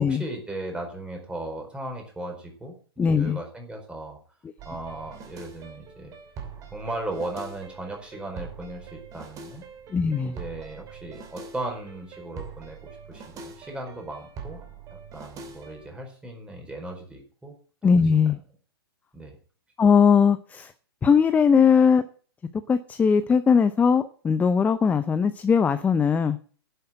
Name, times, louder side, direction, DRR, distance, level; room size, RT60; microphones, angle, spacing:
voice 1, 0.0-4.2 4.6-6.1 6.7-9.6 10.2-12.8 13.1-14.6 15.1-17.5 18.1-18.2 19.1-19.4, right 1 dB, 5° right, 2 dB, 4.6 m, -37 dB
voice 2, 3.0-3.4 9.9-10.4 17.8-18.4 19.8-20.7 21.0-22.0 22.7-26.4, left 6 dB, 10° left, 12 dB, 0.6 m, -20 dB
sound 1, 4.6-15.9, right 5 dB, 25° right, 2.7 m, -43 dB
10.5 x 7.9 x 7.8 m, 0.42 s
figure-of-eight pair, 115°, 13 cm